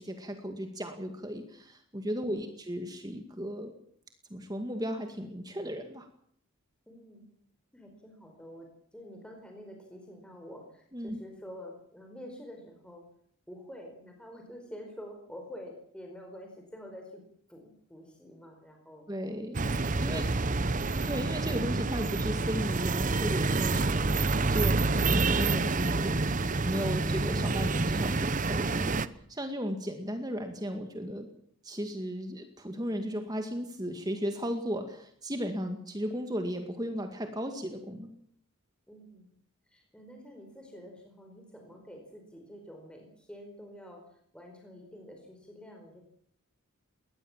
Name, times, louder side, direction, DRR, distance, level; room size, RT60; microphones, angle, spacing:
voice 1, 0.0-3.7 4.3-6.1 10.9-11.2 19.1-19.6 20.0-20.2 21.0-29.0 29.3-31.3 31.6-38.1, equal, 20° right, 6 dB, 2.1 m, -35 dB
voice 2, 2.2-2.6 6.9-7.3 7.7-13.0 13.5-17.2 17.5-19.1 20.1-21.4 38.9-39.3 39.7-46.0, equal, 5° left, 2 dB, 4.8 m, -48 dB
sound 1, 19.5-29.1, right 3 dB, 35° right, 0.8 m, -28 dB
22.0 x 19.0 x 7.4 m, 0.64 s
head